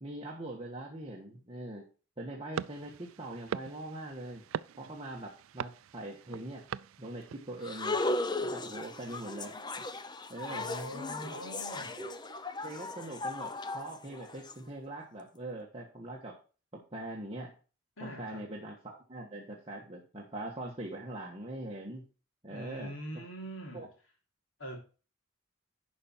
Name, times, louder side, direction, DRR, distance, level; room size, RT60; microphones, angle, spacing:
voice 1, 0.0-1.9 2.2-4.4 4.8-6.6 7.0-8.0 8.4-9.5 10.3-10.7 11.2-11.4 12.0-12.1 12.6-16.4 16.7-17.5 18.0-22.0 22.4-23.2 23.7-23.9, right 1 dB, 30° right, 1.5 m, -42 dB
sound 1, 2.5-7.7, right 8 dB, 75° right, 0.3 m, -42 dB
sound 2, 7.6-14.5, left 2 dB, 20° left, 0.6 m, -36 dB
voice 2, 10.5-12.0 18.0-18.4 22.5-23.9 24.6-24.8, equal, 75° left, 3.6 m, -42 dB
11.0 x 5.5 x 4.5 m
head